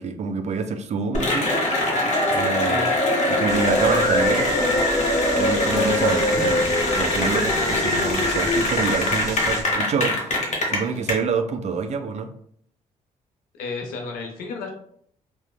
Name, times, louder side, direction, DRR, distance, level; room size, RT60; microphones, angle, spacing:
voice 1, 0.0-1.5 2.3-2.9 3.3-4.8 5.4-10.3 10.7-12.3, right 5 dB, 50° right, 9 dB, 0.4 m, -27 dB
Cheering / Applause, 1.1-11.1, left 1 dB, 50° left, 0.9 m, -22 dB
sound 1, 3.5-9.6, left 1 dB, 25° left, 1.1 m, -35 dB
voice 2, 13.6-14.7, left 4 dB, 85° left, 2 dB, 0.6 m, -32 dB
3.0 x 2.1 x 2.2 m, 0.65 s
supercardioid pair, 55°, 15 cm